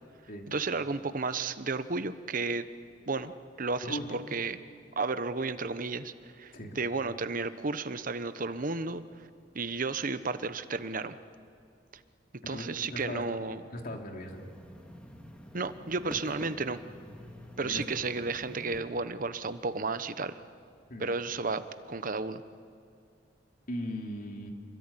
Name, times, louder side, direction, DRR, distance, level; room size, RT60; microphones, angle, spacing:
voice 1, 0.5-2.6 3.1-3.3 3.6-4.6 5.0-9.0 9.5-11.2 12.5-13.6 15.5-16.8 17.6-20.4 21.0-22.4, right 3 dB, 50° right, 12 dB, 1.1 m, -33 dB
voice 2, 3.8-4.2 6.5-6.8 12.4-13.2 13.7-14.5 17.6-17.8 20.9-21.1 23.7-24.5, left 1 dB, 50° left, 2 dB, 3.3 m, -38 dB
sound 1, 14.1-18.8, equal, 5° left, 2.4 m, -48 dB
26.5 x 23.0 x 10.0 m, 2.4 s
head